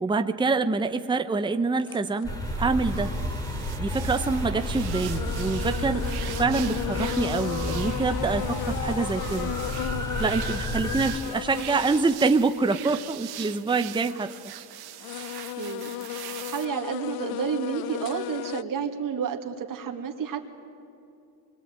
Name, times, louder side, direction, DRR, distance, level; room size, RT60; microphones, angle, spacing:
voice 1, 0.0-2.3 2.6-3.1 3.8-6.1 6.3-9.5 10.2-14.3, right 4 dB, 10° right, 8 dB, 0.8 m, -26 dB
sound 1, 1.9-2.3 3.9-4.0 4.6-4.7 5.1-12.4 12.7-12.8 13.4-14.3 14.9-18.6, left 15 dB, 65° left, 0.6 m, -35 dB
sound 2, 2.2-11.2, equal, 10° left, 3.2 m, -31 dB
sound 3, 2.4-16.6, right 14 dB, 75° right, 1.0 m, -42 dB
voice 2, 15.6-20.4, right 7 dB, 55° right, 3 dB, 2.4 m, -31 dB
24.5 x 21.0 x 8.9 m, 2.6 s
cardioid pair, 130°, 39 cm